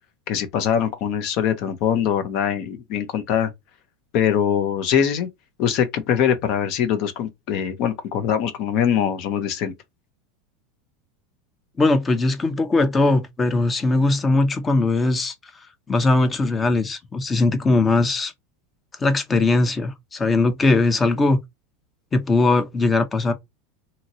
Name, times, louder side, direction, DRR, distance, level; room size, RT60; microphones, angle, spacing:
voice 1, 0.3-3.5 4.1-5.3 5.6-9.7, left 8 dB, 55° left, 0.7 m, -22 dB
voice 2, 11.8-15.3 15.9-18.3 19.0-21.4 22.1-23.3, left 2 dB, 20° left, 0.7 m, -20 dB
2.8 x 2.7 x 2.7 m
supercardioid pair, 110°, 0 cm